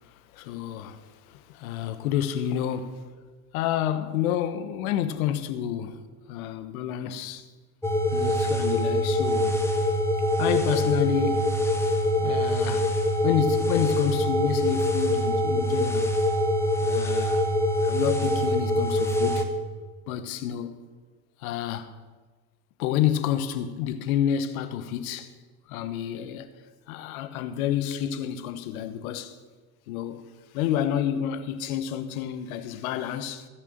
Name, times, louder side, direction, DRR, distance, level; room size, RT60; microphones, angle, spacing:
voice 1, 0.3-3.1 3.5-6.0 6.3-7.5 8.1-9.6 10.4-11.6 12.2-12.9 13.2-16.1 16.8-17.5 17.8-19.5 20.1-20.8 21.4-21.9 22.8-25.3 25.7-26.5 26.9-29.4 29.9-30.2 30.5-33.5, left 10 dB, 75° left, 1.1 m, -29 dB
sound 1, 7.8-19.4, left 1 dB, 5° left, 1.7 m, -24 dB
14.0 x 6.6 x 6.5 m
hypercardioid pair, 70°, 43 cm